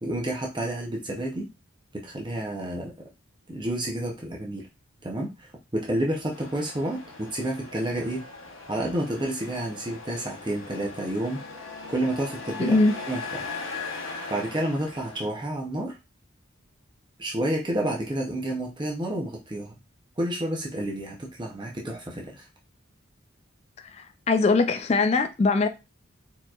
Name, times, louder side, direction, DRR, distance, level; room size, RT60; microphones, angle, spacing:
voice 1, 0.0-1.5 1.9-2.9 3.5-4.7 5.0-8.2 8.7-11.4 11.9-12.8 13.1-13.5 14.3-16.0 17.2-19.7 20.2-22.5, right 1 dB, 20° right, 0.6 m, -30 dB
Truck, 6.3-15.3, left 4 dB, 70° left, 0.8 m, -39 dB
voice 2, 12.6-12.9 24.0-25.7, left 3 dB, 30° left, 0.3 m, -21 dB
4.3 x 2.9 x 2.3 m
head